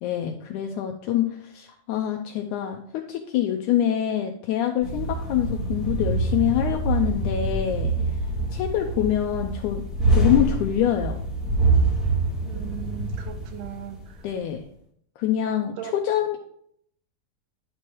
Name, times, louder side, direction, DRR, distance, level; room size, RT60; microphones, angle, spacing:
voice 1, 0.0-7.9 8.5-9.8 10.1-11.2 14.2-14.6 15.2-16.4, left 10 dB, 85° left, 3 dB, 1.8 m, -25 dB
sound 1, 4.8-14.0, right 2 dB, ahead, 0.5 m, -25 dB
voice 2, 12.5-14.3 15.8-16.1, right 10 dB, 80° right, 7 dB, 2.2 m, -38 dB
11.5 x 4.5 x 3.1 m, 0.66 s
omnidirectional pair, 4.0 m